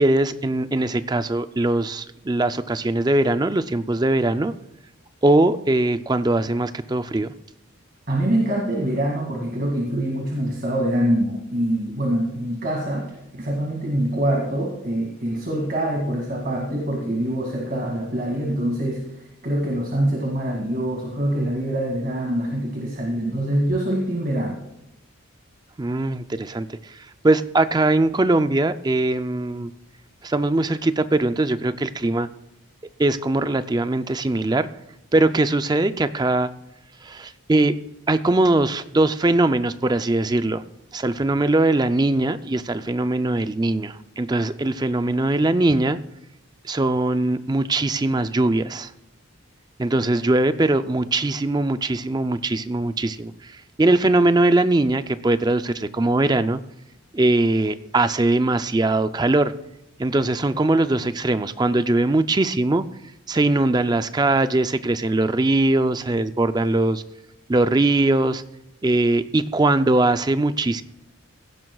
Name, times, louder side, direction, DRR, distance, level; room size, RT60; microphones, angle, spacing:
voice 1, 0.0-4.5 5.2-7.3 25.8-27.0 27.2-29.7 30.2-32.3 33.0-34.7 35.1-36.5 37.0-37.7 38.1-40.6 40.9-46.0 46.6-48.9 49.8-53.5 53.8-56.6 57.1-59.5 60.0-62.8 63.3-67.0 67.5-68.4 68.8-70.8, right 2 dB, 20° right, 11 dB, 0.4 m, -21 dB
voice 2, 8.1-19.0 19.4-24.6, right 1 dB, 45° right, -2 dB, 2.2 m, -24 dB
17.0 x 15.5 x 2.3 m, 0.86 s
head